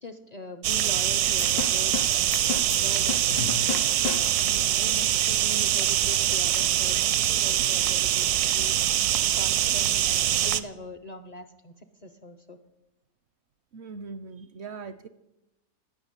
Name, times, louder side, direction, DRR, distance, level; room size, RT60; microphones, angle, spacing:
voice 1, 0.0-2.3 2.8-3.3 3.9-4.1 4.4-8.7 9.3-12.6, left 2 dB, 50° left, 10 dB, 0.5 m, -42 dB
sound 1, 0.6-10.6, right 12 dB, 80° right, 1.2 m, -24 dB
sound 2, 1.4-4.6, left 10 dB, 85° left, 1.3 m, -34 dB
voice 2, 13.7-15.1, right 4 dB, 65° right, 14 dB, 0.7 m, -40 dB
16.5 x 6.2 x 8.9 m, 0.92 s
omnidirectional pair, 1.7 m